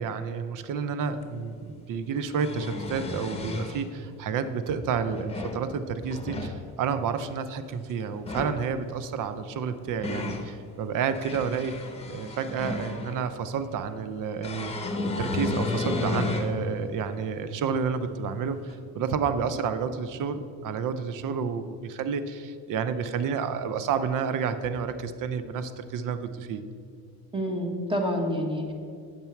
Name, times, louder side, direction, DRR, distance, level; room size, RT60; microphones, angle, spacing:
voice 1, 0.0-11.8 12.1-14.7 15.2-26.6, right 6 dB, 55° right, 11 dB, 0.7 m, -30 dB
sound 1, 1.2-1.3 2.2-3.8 4.9-5.6 6.1-6.5 8.1-8.6 9.5-10.5 11.0-13.2 14.4-16.5 17.1-17.2 18.7-18.8, left 2 dB, 15° left, 1.2 m, -32 dB
voice 2, 27.3-28.7, equal, 15° right, 3 dB, 1.5 m, -28 dB
9.0 x 6.7 x 4.6 m, 2.3 s
cardioid pair, 100°, 38 cm